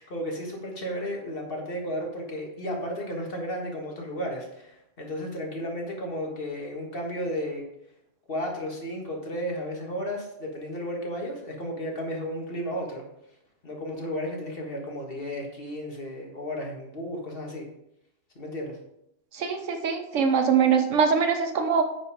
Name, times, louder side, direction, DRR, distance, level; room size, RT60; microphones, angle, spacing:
voice 1, 0.0-7.7 8.3-13.0 13.6-17.7 18.4-18.8, equal, 50° left, 0 dB, 1.9 m, -33 dB
voice 2, 19.3-21.8, right 6 dB, 85° right, 7 dB, 1.3 m, -23 dB
8.7 x 5.2 x 5.0 m, 0.80 s
omnidirectional pair, 1.2 m